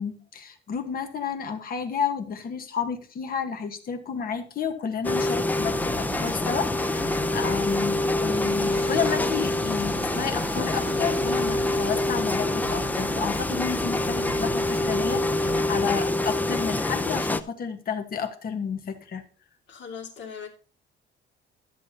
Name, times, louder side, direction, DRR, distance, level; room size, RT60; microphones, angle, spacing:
voice 1, 0.0-19.2, left 7 dB, 50° left, 1.4 m, -31 dB
sound 1, 5.0-17.4, left 2 dB, 10° left, 0.4 m, -26 dB
sound 2, 5.6-15.6, right 6 dB, 50° right, 1.2 m, -40 dB
voice 2, 19.7-20.5, left 6 dB, 65° left, 2.4 m, -39 dB
13.0 x 7.5 x 2.8 m
cardioid pair, 140°, 20 cm